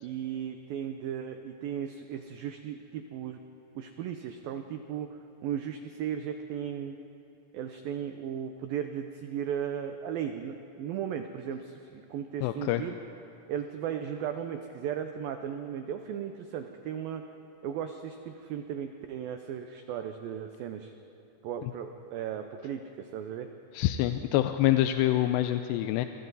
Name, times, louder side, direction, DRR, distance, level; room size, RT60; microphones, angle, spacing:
voice 1, 0.0-3.4 3.8-5.1 5.4-7.0 7.5-13.0 13.5-17.2 17.6-20.9 21.4-23.5, right 9 dB, 85° right, 6 dB, 2.0 m, -36 dB
voice 2, 12.4-12.8 23.7-26.1, left 14 dB, 80° left, 8 dB, 2.6 m, -26 dB
28.5 x 23.5 x 4.1 m, 2.8 s
omnidirectional pair, 5.2 m